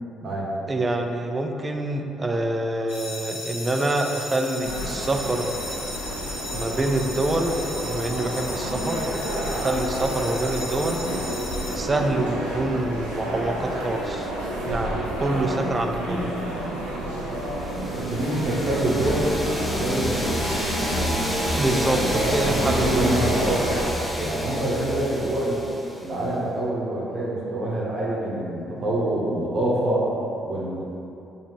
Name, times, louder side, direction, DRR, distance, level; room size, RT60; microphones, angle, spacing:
voice 1, 0.7-5.5 6.5-9.1 9.5-11.0 11.8-14.3 14.7-16.3 21.5-23.1, right 2 dB, 30° right, 4 dB, 0.4 m, -26 dB
sound 1, 2.9-11.8, left 1 dB, 75° left, 0.9 m, -36 dB
sound 2, 4.6-23.8, right 1 dB, 90° right, 0.5 m, -30 dB
sound 3, 17.5-26.2, equal, 10° left, 0.7 m, -29 dB
voice 2, 17.9-19.4 19.7-20.5 22.1-25.6 26.0-30.1 30.4-30.8, right 1 dB, 55° right, -6 dB, 0.8 m, -26 dB
4.8 x 2.4 x 2.9 m, 2.8 s
hypercardioid pair, 50°, 0 cm